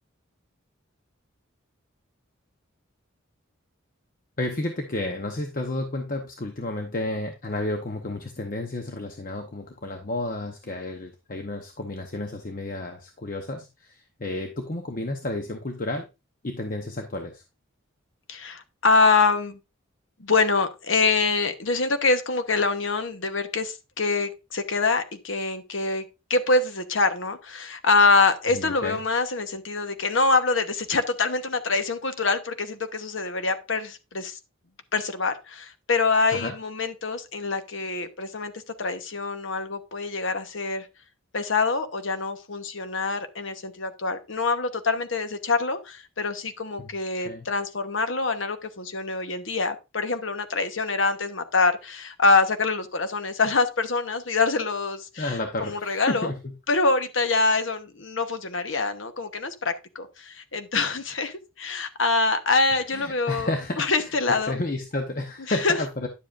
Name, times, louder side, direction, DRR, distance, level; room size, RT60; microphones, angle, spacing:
voice 1, 4.4-16.1 16.4-17.4 28.5-29.0 36.3-36.5 46.8-46.9 47.2-47.5 55.2-56.5 62.7-66.1, left 2 dB, 40° left, 4 dB, 0.8 m, -31 dB
voice 2, 18.3-19.6 20.2-26.0 26.3-34.4 34.9-38.5 38.8-40.9 41.3-55.3 55.6-56.3 56.7-64.6 65.5-65.8, left 3 dB, 70° left, 8 dB, 1.0 m, -25 dB
10.0 x 7.4 x 2.5 m, 0.26 s
head